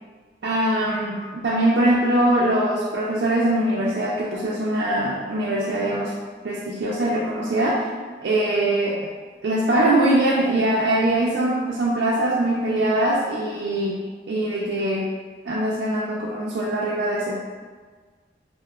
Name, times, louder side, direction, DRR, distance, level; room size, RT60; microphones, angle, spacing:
voice 1, 0.4-6.1 6.4-7.9 8.2-9.0 9.4-14.0 14.3-15.0 15.5-17.3, right 1 dB, 80° right, -5 dB, 0.4 m, -22 dB
5.4 x 2.1 x 2.3 m, 1.5 s
head